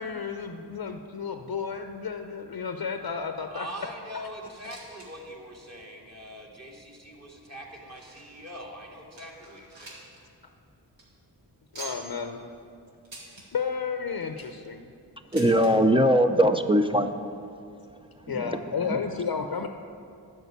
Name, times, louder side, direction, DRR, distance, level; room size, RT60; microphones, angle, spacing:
voice 1, 0.0-3.7 11.7-12.4 13.5-14.9 18.3-19.7, left 6 dB, 55° left, 6 dB, 0.7 m, -32 dB
voice 2, 3.5-10.0, equal, 35° right, -2 dB, 2.1 m, -42 dB
sound 1, 4.4-5.1 5.4-5.5 6.1-6.2 7.0-8.4 8.8-8.9 9.2-10.2 10.5-10.6 10.9-11.0 11.7-12.2 13.0-13.5 14.1-14.6 15.3-15.7 16.7-16.8 17.0-17.1 17.9-18.0, right 2 dB, 85° right, 2.5 m, -44 dB
voice 3, 15.3-17.2 18.3-18.6 18.9-19.0, equal, 10° right, 7 dB, 0.5 m, -21 dB
9.4 x 6.1 x 8.1 m, 2.4 s
cardioid pair, 45°, 43 cm